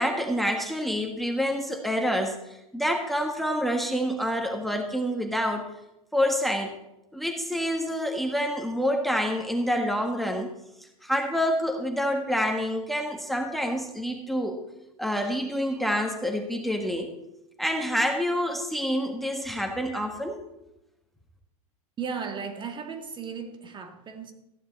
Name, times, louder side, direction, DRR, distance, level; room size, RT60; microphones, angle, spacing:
voice 1, 0.0-5.7 6.1-6.7 7.1-10.5 11.0-14.6 15.0-17.1 17.6-20.4, equal, ahead, 1.4 m, -27 dB
voice 2, 22.0-24.3, right 6 dB, 25° right, 1.7 m, -35 dB
14.5 x 10.5 x 4.0 m
hypercardioid pair, 100°, 19 cm